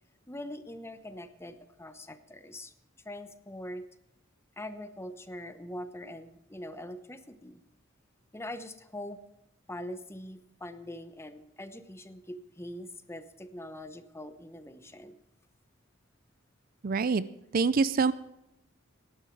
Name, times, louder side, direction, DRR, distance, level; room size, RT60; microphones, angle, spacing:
voice 1, 0.3-2.7 3.0-3.9 4.6-7.6 8.3-9.2 9.7-15.2, left 1 dB, 15° left, 10 dB, 0.9 m, -43 dB
voice 2, 16.8-17.2 17.5-18.1, right 4 dB, 45° right, 16 dB, 0.5 m, -25 dB
18.0 x 11.0 x 4.7 m, 0.84 s
head